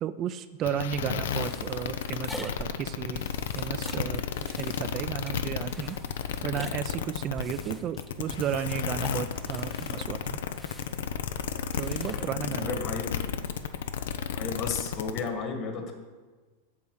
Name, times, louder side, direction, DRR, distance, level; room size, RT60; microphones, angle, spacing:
voice 1, 0.0-3.2 3.5-6.0 6.4-10.4 11.8-12.8, right 9 dB, 35° right, 11 dB, 0.4 m, -33 dB
sound 1, 0.6-15.3, left 7 dB, 80° left, 0.7 m, -32 dB
sound 2, 1.0-13.1, left 1 dB, 5° left, 0.8 m, -47 dB
voice 2, 12.1-13.2 14.3-15.9, left 5 dB, 40° left, 5 dB, 1.7 m, -34 dB
8.6 x 7.1 x 6.4 m, 1.3 s
supercardioid pair, 130°, 0 cm